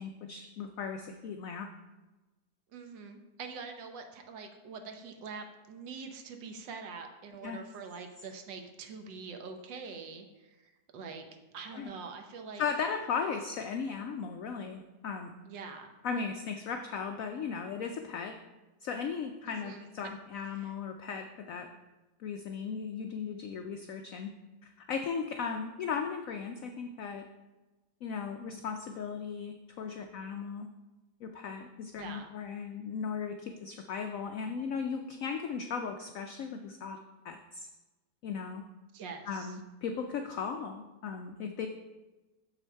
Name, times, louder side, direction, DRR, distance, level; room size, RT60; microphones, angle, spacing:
voice 1, 0.0-1.7 7.4-7.6 11.7-11.9 12.6-15.3 16.0-18.4 18.8-21.7 22.2-24.3 24.6-27.3 28.0-30.7 31.2-37.0 37.2-37.7 38.2-38.6 39.3-41.7, left 6 dB, 90° left, 5 dB, 0.7 m, -37 dB
voice 2, 2.7-11.3 11.5-12.6 15.5-15.9 19.4-19.8 20.4-20.7 32.0-32.3 38.9-39.6, right 5 dB, 75° right, 5 dB, 1.5 m, -44 dB
7.0 x 5.8 x 4.5 m, 1.1 s
omnidirectional pair, 2.0 m